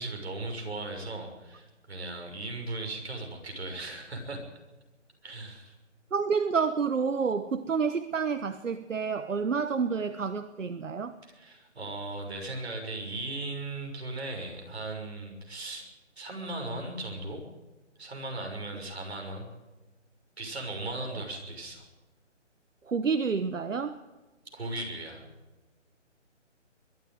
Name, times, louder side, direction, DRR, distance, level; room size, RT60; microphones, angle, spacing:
voice 1, 0.0-4.4 5.2-5.7 11.3-15.8 16.2-17.4 18.0-19.5 20.4-21.8 24.5-25.2, right 2 dB, 55° right, 2 dB, 6.4 m, -37 dB
voice 2, 6.1-11.2 21.1-21.2 22.9-24.0, right 5 dB, 85° right, 11 dB, 1.2 m, -29 dB
22.0 x 12.5 x 9.2 m, 1.1 s
hypercardioid pair, 175°, 37 cm